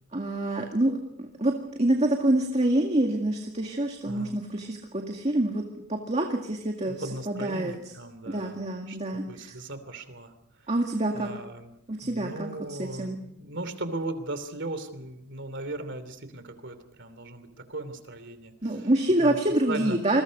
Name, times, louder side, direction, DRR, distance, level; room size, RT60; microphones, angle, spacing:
voice 1, 0.1-5.6 5.9-7.8 8.3-9.6 10.7-11.3 11.9-13.2 18.6-20.2, right 1 dB, 30° right, 2 dB, 2.0 m, -27 dB
voice 2, 4.1-4.4 7.0-8.6 8.9-10.3 10.6-10.7 11.1-11.7 12.0-18.5 18.8-18.9 19.2-19.4 19.7-20.0, right 2 dB, 55° right, 11 dB, 3.0 m, -37 dB
28.0 x 22.0 x 5.3 m, 0.77 s
head